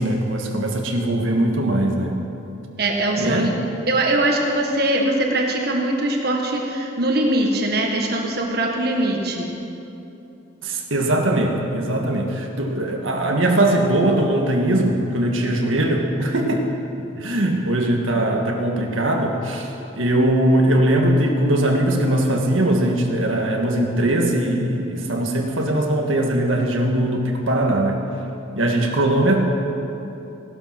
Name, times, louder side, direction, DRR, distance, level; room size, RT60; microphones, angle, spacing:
voice 1, 0.0-2.2 3.1-3.5 10.6-16.7 17.2-28.0 28.5-29.4, right 1 dB, 85° right, 1 dB, 1.7 m, -20 dB
voice 2, 2.8-3.5 3.9-9.5 17.2-17.4, right 1 dB, 50° right, 0 dB, 1.7 m, -22 dB
17.0 x 12.0 x 6.0 m, 2.9 s
head